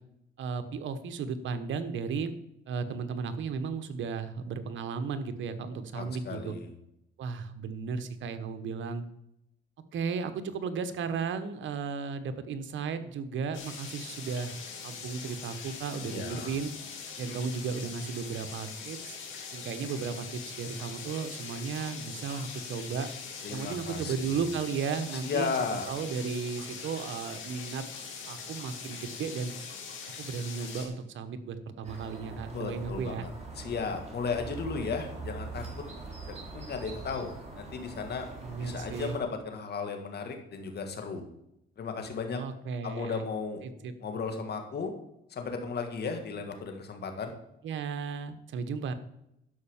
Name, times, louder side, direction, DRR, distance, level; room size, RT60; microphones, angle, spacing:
voice 1, 0.4-2.3 2.7-6.5 7.2-9.0 9.9-14.5 14.8-16.7 17.2-19.2 19.5-23.1 23.5-25.6 25.9-27.8 28.3-29.5 30.2-33.3 38.4-39.2 42.3-43.3 43.6-43.9 47.6-48.9, right 5 dB, 70° right, 10 dB, 1.1 m, -35 dB
voice 2, 5.9-6.7 16.0-16.5 23.4-24.4 25.1-25.9 32.5-33.3 33.6-35.6 36.5-37.3 37.6-38.3 38.6-41.2 41.8-42.4 42.8-43.6 44.0-44.9 45.3-47.3, left 5 dB, 55° left, 5 dB, 2.2 m, -35 dB
sound 1, 13.5-30.9, left 5 dB, 80° left, 2.7 m, -42 dB
sound 2, 31.8-39.2, right 3 dB, 35° right, 3.5 m, -43 dB
11.5 x 5.6 x 7.2 m, 0.81 s
cardioid pair, 90°, 20 cm